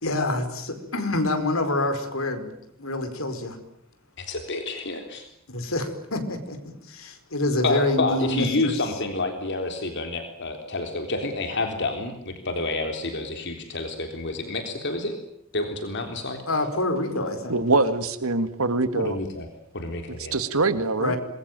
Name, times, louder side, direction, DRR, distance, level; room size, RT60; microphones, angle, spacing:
voice 1, 0.0-2.5 2.8-3.6 5.5-6.6 6.9-8.8 16.5-17.6 21.0-21.2, left 2 dB, 70° left, 8 dB, 4.9 m, -26 dB
voice 2, 4.2-5.3 7.6-15.2 15.5-16.4 18.9-19.5 19.7-20.4, left 2 dB, 55° left, 5 dB, 3.8 m, -29 dB
voice 3, 17.5-19.2 20.3-21.1, right 3 dB, 90° right, 11 dB, 1.9 m, -23 dB
26.5 x 22.0 x 9.2 m, 0.74 s
head